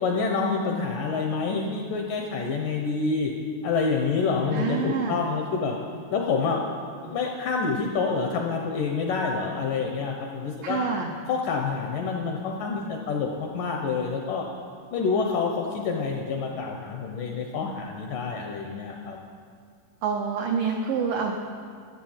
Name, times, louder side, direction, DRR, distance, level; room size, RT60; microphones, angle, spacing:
voice 1, 0.0-3.3 3.6-5.8 6.1-6.6 7.0-10.8 11.3-14.5 14.9-19.2, left 4 dB, 75° left, 1 dB, 2.0 m, -27 dB
voice 2, 4.5-5.3 10.6-11.1 20.0-21.3, right 6 dB, 80° right, 1 dB, 1.9 m, -27 dB
13.5 x 8.2 x 7.2 m, 2.1 s
omnidirectional pair, 4.8 m